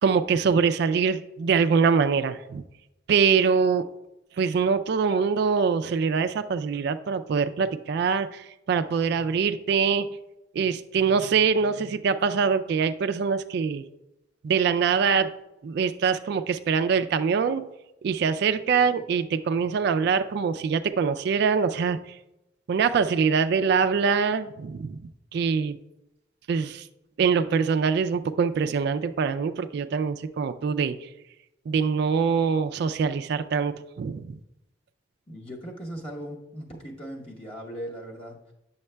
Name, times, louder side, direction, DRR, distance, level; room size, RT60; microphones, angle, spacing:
voice 1, 0.0-2.6 3.1-3.9 4.4-10.2 10.5-13.8 14.4-15.3 15.6-17.7 18.0-22.2 22.7-25.0 25.3-25.8 26.5-26.9 27.2-31.1 31.7-34.4, right 6 dB, 60° right, 10 dB, 0.3 m, -24 dB
voice 2, 35.3-38.5, equal, 30° left, -3 dB, 1.0 m, -38 dB
9.5 x 7.0 x 2.2 m, 0.92 s
head